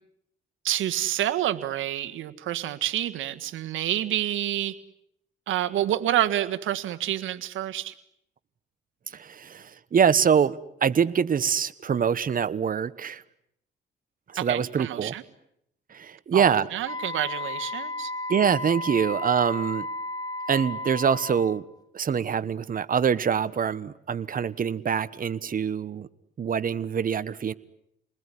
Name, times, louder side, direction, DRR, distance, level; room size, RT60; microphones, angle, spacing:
voice 1, 0.6-4.8 5.5-7.9 14.4-15.2 16.3-18.1, right 12 dB, 80° right, 11 dB, 1.8 m, -28 dB
voice 2, 9.1-13.2 14.3-15.1 15.9-16.7 18.3-19.9 20.5-21.6 21.9-26.1 26.4-27.5, right 7 dB, 45° right, 14 dB, 1.3 m, -25 dB
Wind instrument woodwind instrument, 16.8-21.6, left 2 dB, 20° left, 2.4 m, -34 dB
29.0 x 20.5 x 10.0 m, 0.76 s
cardioid pair, 90°, 20 cm